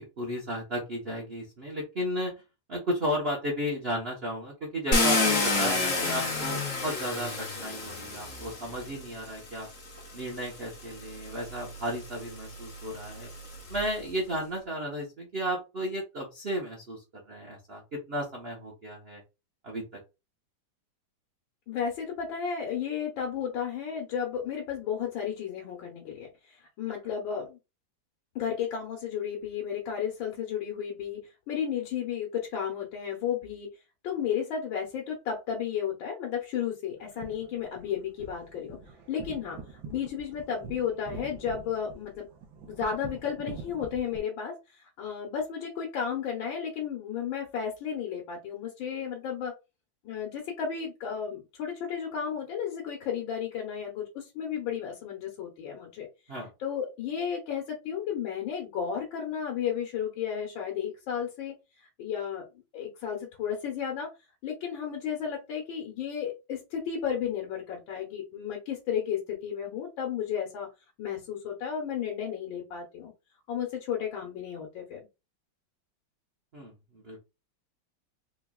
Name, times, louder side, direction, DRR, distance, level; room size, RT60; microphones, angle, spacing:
voice 1, 0.0-2.3 2.7-9.7 10.1-13.3 13.7-19.2 19.6-20.0 56.3-56.5 76.5-77.2, equal, 40° right, -3 dB, 1.0 m, -34 dB
Car, 4.9-9.0 10.0-10.1 10.6-13.9, left 3 dB, 45° left, 1.3 m, -29 dB
voice 2, 21.7-27.6 28.4-33.7 34.0-38.8 39.1-42.3 42.7-49.6 50.0-56.1 56.6-64.1 64.4-70.7 71.0-73.1 73.5-75.1, left 8 dB, 85° left, 0 dB, 1.7 m, -33 dB
sound 1, 37.0-44.2, right 4 dB, 85° right, 1.6 m, -45 dB
4.4 x 3.0 x 2.3 m, 0.26 s
omnidirectional pair, 2.1 m